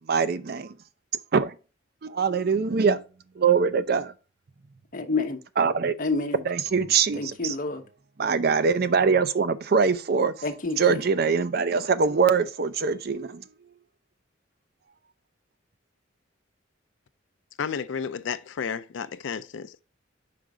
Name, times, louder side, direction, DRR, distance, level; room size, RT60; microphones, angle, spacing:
voice 1, 0.1-0.7 1.3-1.5 2.0-3.0 3.4-4.1 5.6-5.9 6.5-7.5 8.2-10.3 10.8-13.4, right 5 dB, 50° right, 0.5 m, -23 dB
voice 2, 4.9-5.4 6.0-6.4 7.1-7.8 10.4-11.0, left 3 dB, 45° left, 0.9 m, -28 dB
voice 3, 17.6-19.8, left 6 dB, 70° left, 0.4 m, -32 dB
5.0 x 4.6 x 4.9 m
head